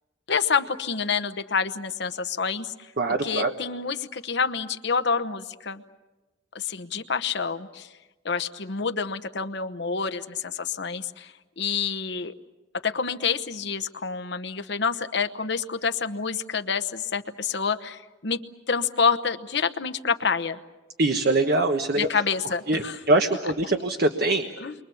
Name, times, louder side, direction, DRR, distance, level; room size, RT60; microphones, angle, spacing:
voice 1, 0.3-2.7 3.2-5.8 6.5-7.9 8.2-12.3 12.8-18.4 18.7-20.6 22.0-23.0 24.6-24.7, left 5 dB, 65° left, 10 dB, 1.0 m, -27 dB
voice 2, 3.0-3.5 21.0-22.1 22.7-24.4, right 2 dB, 55° right, 5 dB, 1.3 m, -23 dB
29.5 x 23.5 x 7.2 m, 1.1 s
head